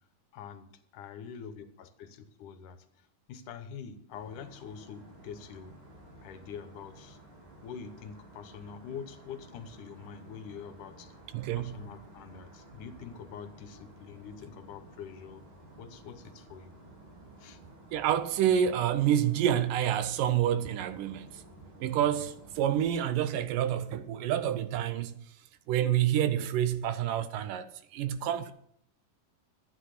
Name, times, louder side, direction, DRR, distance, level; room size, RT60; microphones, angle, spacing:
voice 1, 0.3-5.8 6.2-7.2 7.6-11.2 11.6-15.4 15.8-16.7 17.4-17.6, left 7 dB, 70° left, 2.4 m, -45 dB
sound 1, 4.1-22.9, right 1 dB, 40° right, 4.0 m, -53 dB
voice 2, 11.3-11.7 17.9-21.4 21.8-25.2 25.7-28.5, right 10 dB, 80° right, 2.5 m, -28 dB
12.0 x 9.6 x 6.6 m
omnidirectional pair, 3.9 m